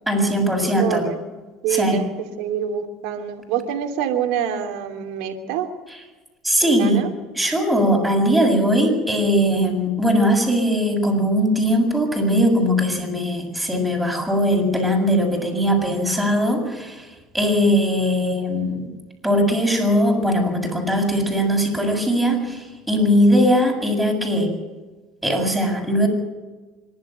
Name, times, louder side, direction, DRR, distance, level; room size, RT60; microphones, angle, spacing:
voice 1, 0.1-1.0 1.7-2.0 6.4-7.0 7.4-17.1 17.3-18.9 19.2-24.5 25.2-26.1, equal, 5° right, 2 dB, 7.5 m, -20 dB
voice 2, 0.6-1.2 1.6-5.7 6.6-7.1, right 8 dB, 70° right, 5 dB, 2.9 m, -26 dB
25.5 x 12.5 x 9.2 m, 1.2 s
hypercardioid pair, 75°, 0 cm